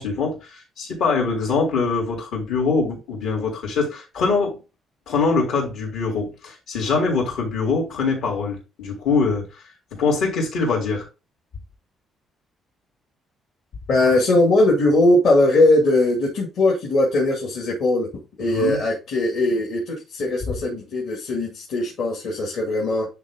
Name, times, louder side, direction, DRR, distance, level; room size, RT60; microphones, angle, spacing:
voice 1, 0.0-4.6 5.1-11.1 18.5-18.8, left 4 dB, 70° left, 3.8 m, -23 dB
voice 2, 13.9-18.1 18.4-23.1, left 2 dB, 55° left, 2.3 m, -20 dB
10.5 x 3.6 x 3.6 m
cardioid pair, 175°, 0 cm